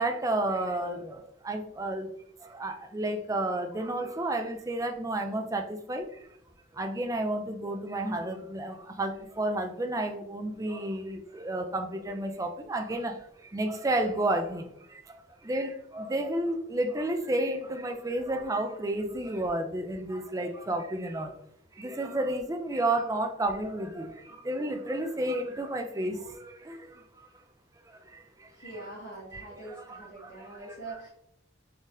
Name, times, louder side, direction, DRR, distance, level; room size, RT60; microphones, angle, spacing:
voice 1, 0.0-2.1 2.4-6.3 6.7-21.3 21.7-27.3 27.9-28.7 29.3-30.8, right 1 dB, 20° right, 5 dB, 0.4 m, -32 dB
voice 2, 28.5-31.1, right 2 dB, 60° left, -7 dB, 1.5 m, -43 dB
4.0 x 3.9 x 2.4 m, 0.71 s
head